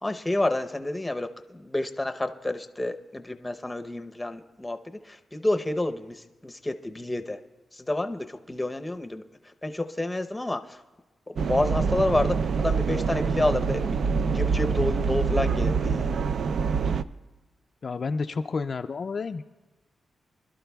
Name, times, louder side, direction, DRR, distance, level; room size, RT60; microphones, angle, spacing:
voice 1, 0.0-7.4 7.7-10.8 11.3-14.0 14.3-16.1, left 1 dB, 15° left, 7 dB, 0.7 m, -29 dB
sound 1, 11.4-17.0, right 5 dB, 70° right, 0.3 m, -25 dB
voice 2, 17.8-19.5, left 4 dB, 50° left, 7 dB, 0.3 m, -30 dB
25.0 x 12.0 x 2.3 m, 1.2 s
cardioid pair, 100°, 0 cm